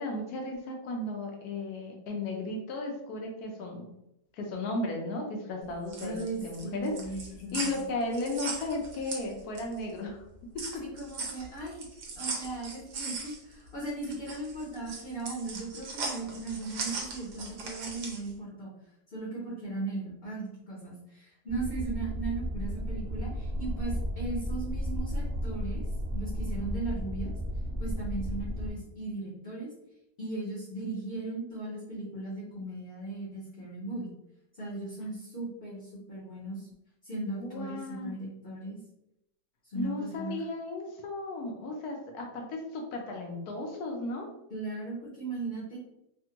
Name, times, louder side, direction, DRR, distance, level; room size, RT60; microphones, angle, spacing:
voice 1, 0.0-3.9 4.3-6.9 7.4-10.2 37.4-38.2 39.7-44.3, left 2 dB, 70° left, 1 dB, 1.2 m, -35 dB
sound 1, 5.7-9.8 10.2-18.3, right 3 dB, 85° right, 1.2 m, -39 dB
voice 2, 6.0-7.9 10.8-11.8 12.2-18.7 19.1-25.8 26.1-27.3 27.8-29.7 30.2-34.1 34.5-36.7 37.0-38.8 39.6-40.3 44.5-45.8, right 3 dB, 45° left, -6 dB, 0.8 m, -37 dB
sound 2, 21.5-28.7, equal, 20° right, 0.6 m, -33 dB
3.4 x 2.2 x 2.8 m, 0.83 s
omnidirectional pair, 1.7 m